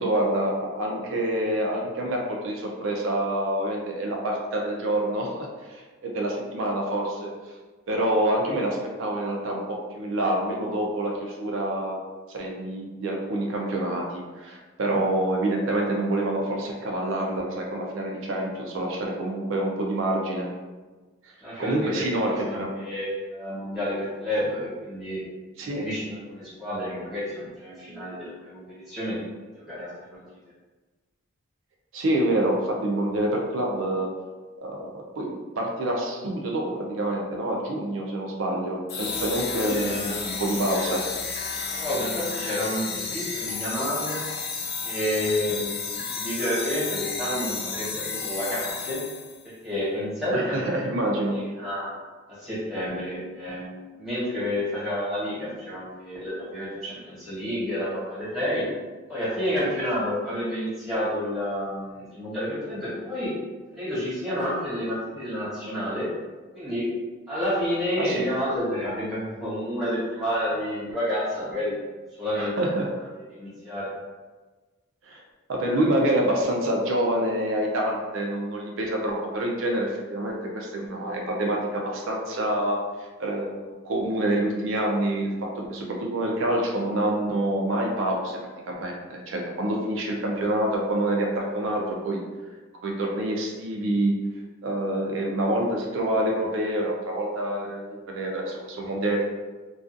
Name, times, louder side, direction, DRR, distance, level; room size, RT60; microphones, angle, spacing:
voice 1, 0.0-7.3 7.9-12.0 12.3-20.5 21.2-21.3 21.6-22.7 25.6-25.9 31.9-34.1 34.6-41.0 50.3-51.4 68.0-68.3 72.4-73.1 75.1-75.2 75.5-88.4 88.7-92.2 92.8-94.1 94.6-99.2, right 1 dB, 70° right, -1 dB, 0.4 m, -27 dB
voice 2, 21.4-25.2 25.6-29.2 29.6-30.2 39.6-40.3 40.9-41.0 41.7-44.2 44.8-49.0 49.4-50.6 51.3-51.9 52.3-53.7 54.0-58.7 59.1-63.3 63.7-66.1 66.5-66.9 67.3-71.8 72.2-72.5 73.3-73.9, equal, 5° right, -10 dB, 1.0 m, -30 dB
sound 1, 38.9-49.4, left 5 dB, 50° left, 0.4 m, -32 dB
2.3 x 2.3 x 2.5 m, 1.3 s
head